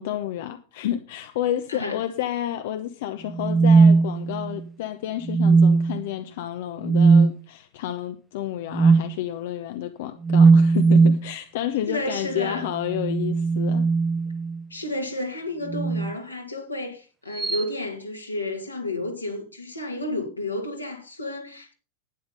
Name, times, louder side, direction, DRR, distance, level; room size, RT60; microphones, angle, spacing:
voice 1, 0.0-13.9, left 12 dB, 55° left, 0.8 m, -30 dB
sound 1, 3.3-4.6 5.3-6.0 6.8-7.3 8.7-9.1 10.2-11.3 12.8-14.6 15.7-16.1 17.4-17.6, right 4 dB, 10° right, 0.5 m, -18 dB
voice 2, 11.9-12.7 14.7-21.7, left 1 dB, 85° left, 2.5 m, -31 dB
11.5 x 9.6 x 5.3 m
figure-of-eight pair, 90°, 0 cm